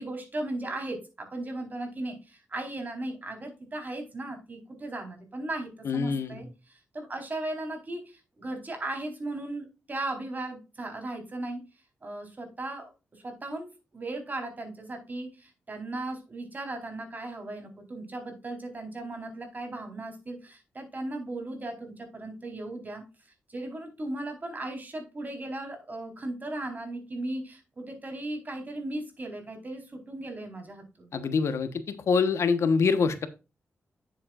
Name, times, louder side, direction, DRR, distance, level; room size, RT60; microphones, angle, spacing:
voice 1, 0.0-11.6 12.0-23.0 23.5-31.1, right 2 dB, 35° right, 4 dB, 4.2 m, -37 dB
voice 2, 5.8-6.4 31.1-33.3, left 5 dB, 70° left, 11 dB, 1.2 m, -25 dB
9.9 x 7.6 x 2.5 m, 0.29 s
cardioid pair, 65°, 5 cm